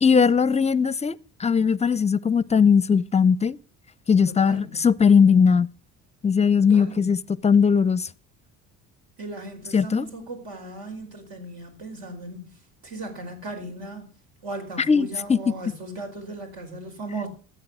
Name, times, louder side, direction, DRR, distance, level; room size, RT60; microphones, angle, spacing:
voice 1, 0.0-3.6 4.1-5.7 6.2-8.1 9.7-10.1 14.9-15.4, left 6 dB, 20° left, 0.5 m, -19 dB
voice 2, 4.3-4.8 6.7-7.1 9.2-12.6 12.8-14.1 14.4-17.3, right 2 dB, 75° right, 4.7 m, -37 dB
14.5 x 8.4 x 6.2 m
cardioid pair, 95°, 37 cm